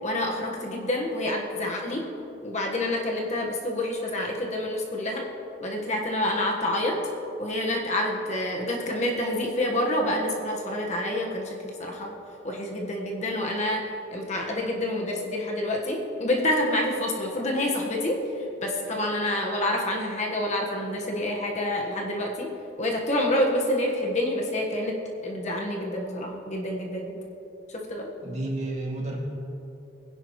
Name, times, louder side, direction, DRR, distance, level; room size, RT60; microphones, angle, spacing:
voice 1, 0.0-2.1 2.4-5.3 5.6-7.0 7.4-12.1 12.4-22.5 22.8-24.9 25.2-27.2 27.7-28.1, left 1 dB, 35° left, 0 dB, 1.4 m, -28 dB
voice 2, 28.2-29.2, right 2 dB, 35° right, -2 dB, 2.2 m, -31 dB
21.5 x 10.5 x 3.1 m, 2.9 s
head